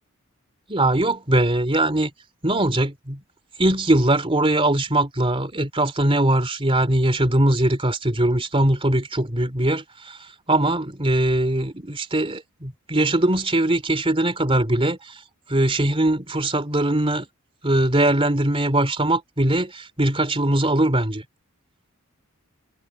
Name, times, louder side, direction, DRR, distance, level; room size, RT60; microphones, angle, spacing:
voice 1, 0.7-2.1 2.4-3.2 3.6-10.2 10.5-15.2 15.5-17.3 17.6-21.2, right 1 dB, 25° right, 3.0 m, -21 dB
head